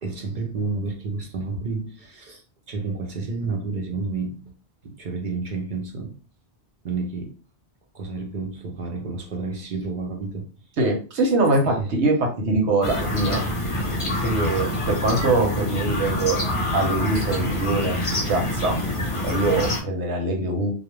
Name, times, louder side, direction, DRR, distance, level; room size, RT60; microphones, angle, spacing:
voice 1, 0.0-4.4 4.8-6.2 6.8-7.3 7.9-10.5 11.8-11.9, right 4 dB, 55° right, 0.6 m, -30 dB
voice 2, 10.8-13.4 14.2-16.4 16.7-18.0 18.3-18.8 19.2-20.7, right 2 dB, 85° right, 1.1 m, -23 dB
sound 1, 12.8-19.8, left 1 dB, 35° left, 0.6 m, -26 dB
2.3 x 2.1 x 3.0 m
omnidirectional pair, 1.1 m